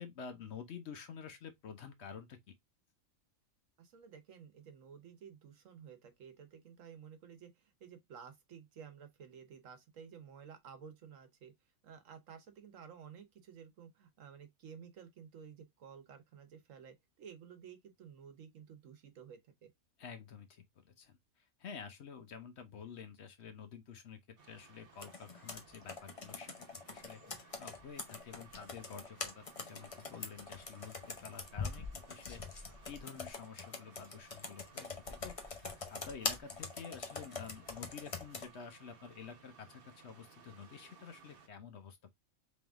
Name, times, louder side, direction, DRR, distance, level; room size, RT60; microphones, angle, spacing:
voice 1, 0.0-2.4 20.0-34.9 35.2-42.1, left 6 dB, 60° left, 0.9 m, -50 dB
voice 2, 3.8-11.5 11.8-19.7, right 7 dB, 70° right, 1.2 m, -53 dB
sound 1, 24.4-41.5, right 6 dB, 50° right, 0.9 m, -61 dB
Computer keyboard, 25.0-38.5, left 4 dB, 35° left, 0.6 m, -44 dB
3.6 x 3.1 x 3.4 m
omnidirectional pair, 1.4 m